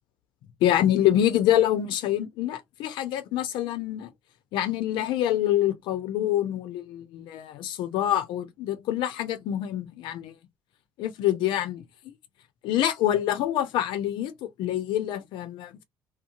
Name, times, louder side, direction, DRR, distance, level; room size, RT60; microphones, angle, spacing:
voice 1, 0.6-4.1 4.5-10.3 11.0-11.8 12.6-15.8, left 12 dB, 70° left, 0.7 m, -26 dB
2.9 x 2.2 x 2.6 m
hypercardioid pair, 65°, 8 cm